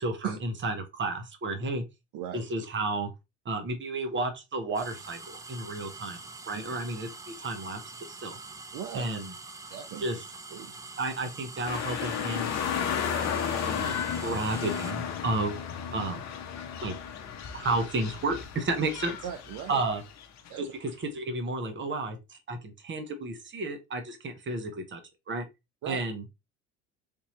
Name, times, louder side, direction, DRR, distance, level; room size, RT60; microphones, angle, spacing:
voice 1, 0.0-1.8 2.3-3.1 3.4-6.2 6.5-7.1 7.4-7.8 8.1-8.4 8.9-9.3 10.0-10.2 11.0-12.5 13.4-15.6 15.9-16.2 16.8-16.9 17.5-19.2 19.7-20.0 20.6-25.0 25.3-25.4 25.9-26.2, right 2 dB, 30° right, 1.2 m, -32 dB
sound 1, 4.7-14.9, right 3 dB, 10° right, 0.4 m, -45 dB
voice 2, 8.7-9.0 9.7-10.1 10.5-10.7 19.2-19.8 20.5-20.7 25.8-26.0, right 10 dB, 55° right, 0.8 m, -37 dB
sound 2, 11.6-20.5 20.9-21.0, left 8 dB, 50° left, 0.8 m, -33 dB
3.6 x 2.8 x 3.1 m
hypercardioid pair, 75°, 36 cm